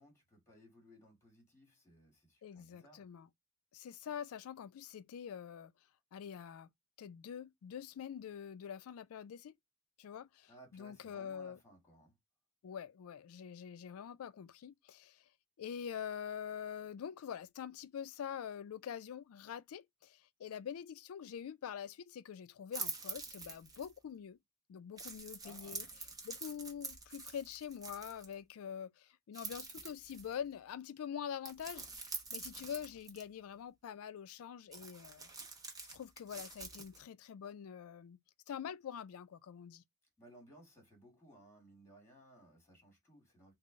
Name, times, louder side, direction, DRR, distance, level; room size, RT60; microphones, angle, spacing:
voice 1, 0.0-3.0 10.5-12.1 25.4-26.0 40.2-43.5, equal, 10° left, 1.3 m, -61 dB
voice 2, 2.4-3.3 3.7-5.7 6.1-6.7 7.0-9.5 10.0-11.6 12.6-15.2 15.6-24.4 24.7-25.9 26.2-35.3 35.9-38.2 38.5-39.8, left 8 dB, 75° left, 0.3 m, -45 dB
sound 1, 22.7-24.0 25.0-28.3 29.3-30.4 31.4-33.2 34.7-37.0, right 4 dB, 15° right, 0.8 m, -46 dB
3.7 x 2.1 x 3.5 m
head